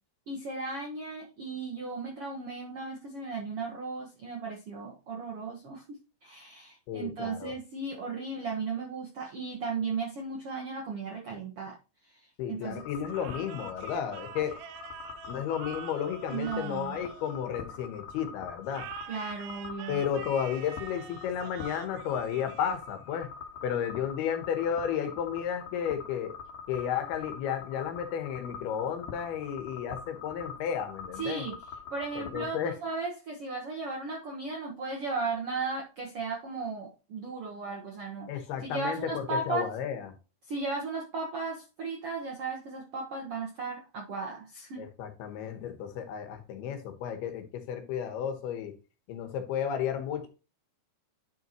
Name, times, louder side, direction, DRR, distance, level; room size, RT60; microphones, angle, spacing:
voice 1, 0.3-11.7 12.0-12.8 16.3-17.0 19.1-20.0 31.2-39.7 40.4-44.8, right 4 dB, 65° right, -1 dB, 1.4 m, -36 dB
voice 2, 6.9-7.5 12.4-14.5 15.3-18.8 19.9-23.3 23.6-26.3 26.7-31.4 32.2-32.7 38.3-40.1 44.8-48.7 49.1-50.3, left 8 dB, 75° left, 7 dB, 3.1 m, -33 dB
sound 1, 12.7-32.4, left 6 dB, 60° left, 2.8 m, -45 dB
sound 2, 13.1-17.9 18.7-23.1, right 10 dB, 80° right, 2.4 m, -46 dB
10.0 x 5.7 x 3.0 m, 0.32 s
omnidirectional pair, 4.6 m